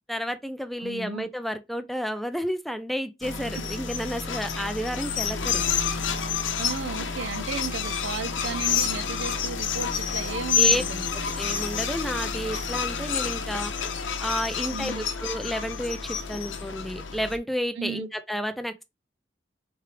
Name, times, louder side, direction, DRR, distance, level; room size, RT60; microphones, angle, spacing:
voice 1, 0.1-5.6 10.6-10.8 11.4-13.7 14.2-18.8, equal, ahead, 0.3 m, -31 dB
voice 2, 0.8-1.3 6.6-11.1 14.7-15.0 17.8-18.1, right 5 dB, 70° right, 0.4 m, -34 dB
sound 1, 3.2-17.4, left 6 dB, 85° left, 0.7 m, -29 dB
3.4 x 3.3 x 3.2 m
head